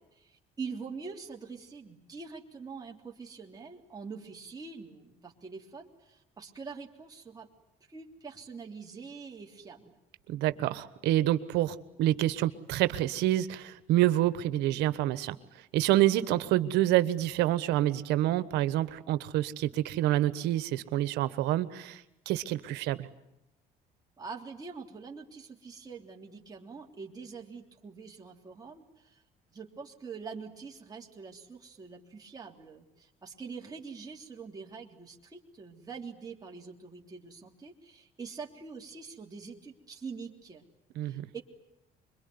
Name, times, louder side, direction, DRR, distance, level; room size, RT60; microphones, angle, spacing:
voice 1, 0.0-7.5 7.9-10.0 24.2-29.2 29.5-40.6 41.0-41.4, right 5 dB, 20° right, -1 dB, 3.3 m, -44 dB
voice 2, 10.3-15.3 15.7-23.1 41.0-41.2, right 14 dB, 90° right, 13 dB, 1.3 m, -27 dB
25.5 x 22.5 x 9.6 m, 0.86 s
cardioid pair, 110°, 17 cm